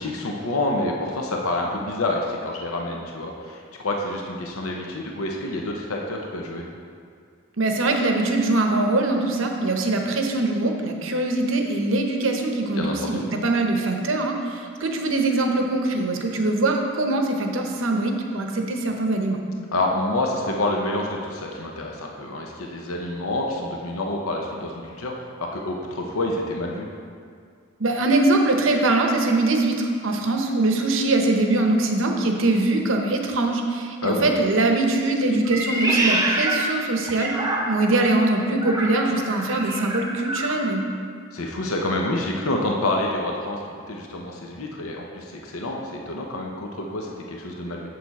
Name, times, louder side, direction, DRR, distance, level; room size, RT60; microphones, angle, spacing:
voice 1, 0.0-6.6 12.8-13.2 19.7-26.9 34.0-34.3 41.3-48.0, left 2 dB, 75° left, 0 dB, 0.8 m, -28 dB
voice 2, 7.6-19.4 27.8-37.3 37.7-40.8, right 2 dB, 65° right, 3 dB, 0.8 m, -22 dB
Meow, 35.4-38.0 38.6-40.6, right 1 dB, 15° right, 0.7 m, -26 dB
7.6 x 6.7 x 4.1 m, 2.2 s
head